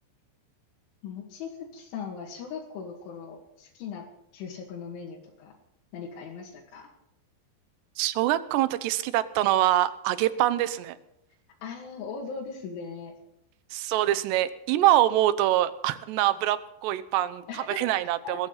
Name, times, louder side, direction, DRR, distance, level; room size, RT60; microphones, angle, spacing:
voice 1, 1.0-4.1 4.3-5.5 5.9-6.9 11.6-13.1 17.5-17.9 18.2-18.3, left 6 dB, 85° left, -2 dB, 4.7 m, -39 dB
voice 2, 8.0-11.0 13.7-18.5, right 14 dB, 75° right, 14 dB, 2.9 m, -24 dB
21.0 x 14.5 x 4.1 m, 0.82 s
omnidirectional pair, 5.4 m